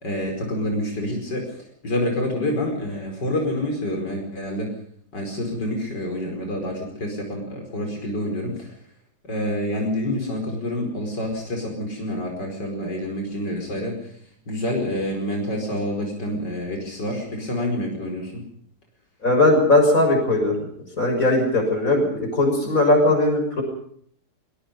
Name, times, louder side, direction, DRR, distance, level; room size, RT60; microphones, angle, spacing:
voice 1, 0.0-1.4 1.8-4.7 5.1-8.7 9.2-14.1 14.5-18.4, left 1 dB, 85° left, 1 dB, 5.6 m, -27 dB
voice 2, 19.2-20.5 21.0-23.6, left 2 dB, 50° left, 4 dB, 6.9 m, -19 dB
22.5 x 22.5 x 5.3 m, 0.63 s
omnidirectional pair, 1.8 m